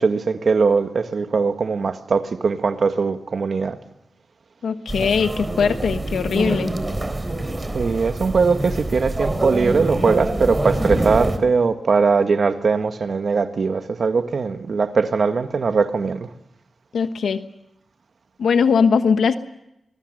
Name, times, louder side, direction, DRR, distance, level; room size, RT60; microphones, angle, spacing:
voice 1, 0.0-3.8 7.7-16.3, right 4 dB, 65° right, 8 dB, 1.6 m, -20 dB
voice 2, 4.6-6.7 16.9-17.4 18.4-19.4, left 6 dB, 90° left, 10 dB, 1.2 m, -20 dB
sound 1, 4.9-11.4, right 1 dB, 25° right, 3.7 m, -25 dB
24.5 x 21.5 x 6.6 m, 0.83 s
cardioid pair, 55°, 0 cm